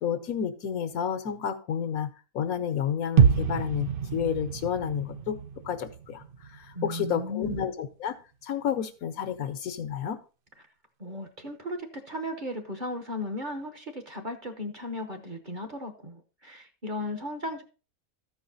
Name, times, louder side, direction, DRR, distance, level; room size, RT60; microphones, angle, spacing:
voice 1, 0.0-5.4 5.6-6.2 6.5-8.2 8.4-10.2, left 8 dB, 75° left, 9 dB, 1.4 m, -30 dB
sound 1, 3.2-7.1 7.4-7.5, right 7 dB, 55° right, 0.6 m, -26 dB
voice 2, 6.7-7.6 11.0-17.6, left 1 dB, 35° right, 6 dB, 1.1 m, -36 dB
13.5 x 4.8 x 4.0 m, 0.34 s
omnidirectional pair, 1.5 m